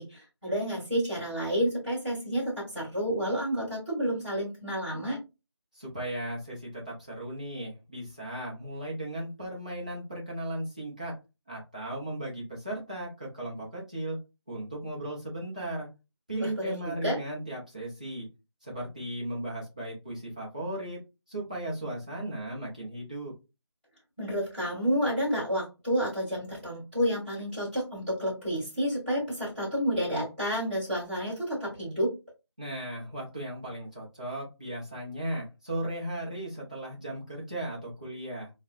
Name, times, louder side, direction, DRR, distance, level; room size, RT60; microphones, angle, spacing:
voice 1, 0.0-5.2 16.4-17.2 24.2-32.1, equal, ahead, -13 dB, 1.5 m, -30 dB
voice 2, 5.7-11.1 11.5-14.2 14.5-15.9 16.3-18.3 18.6-21.0 21.3-23.3 32.6-38.5, right 1 dB, 15° right, -5 dB, 0.7 m, -36 dB
4.2 x 2.2 x 2.4 m, 0.26 s
figure-of-eight pair, 175°, 14 cm